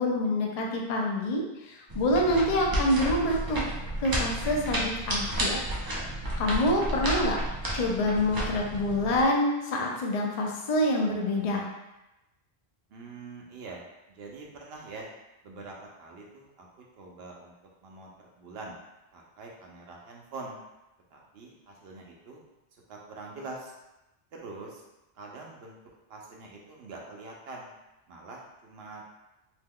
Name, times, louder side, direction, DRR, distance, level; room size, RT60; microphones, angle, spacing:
voice 1, 0.0-3.6 4.0-5.6 6.4-7.4 7.7-11.7, left 1 dB, 50° left, -1 dB, 0.4 m, -26 dB
sound 1, 1.9-9.2, right 1 dB, 30° right, 0.4 m, -32 dB
voice 2, 6.5-7.2 12.9-13.9 14.1-15.1 15.4-16.7 17.0-17.5 17.8-18.8 19.1-20.6 21.1-22.4 22.9-23.7 24.3-24.8 25.1-25.8 26.1-27.7 28.1-29.0, right 3 dB, 70° right, -1 dB, 0.9 m, -44 dB
2.8 x 2.2 x 3.5 m, 0.97 s
omnidirectional pair, 1.1 m